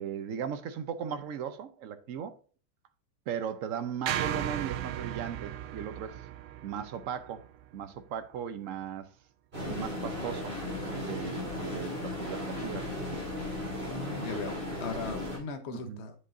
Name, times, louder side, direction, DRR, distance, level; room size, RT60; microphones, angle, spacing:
voice 1, 0.0-2.4 3.3-6.2 6.6-7.4 7.7-9.1 9.7-12.9 15.7-16.0, right 8 dB, 65° right, 0.8 m, -37 dB
sound 1, 4.1-8.4, right 12 dB, 90° right, 1.4 m, -36 dB
sound 2, 9.5-15.4, left 1 dB, 30° right, 4.3 m, -36 dB
voice 2, 13.9-16.1, left 5 dB, 45° left, 1.0 m, -38 dB
8.4 x 7.6 x 2.6 m
omnidirectional pair, 2.1 m